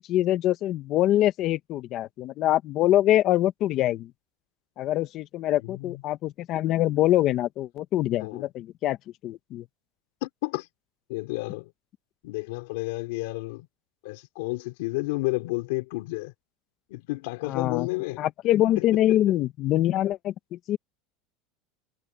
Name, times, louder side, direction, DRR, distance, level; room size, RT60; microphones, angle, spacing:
voice 1, 0.0-4.1 4.8-9.0 9.2-9.6 17.4-17.9 18.2-20.8, left 13 dB, 40° left, 0.8 m, -24 dB
voice 2, 5.6-6.0 8.2-8.5 10.2-10.7 11.1-11.7 12.2-13.7 14.0-16.3 16.9-18.2 18.7-19.2, left 23 dB, 70° left, 3.3 m, -31 dB
supercardioid pair, 160°, 0 cm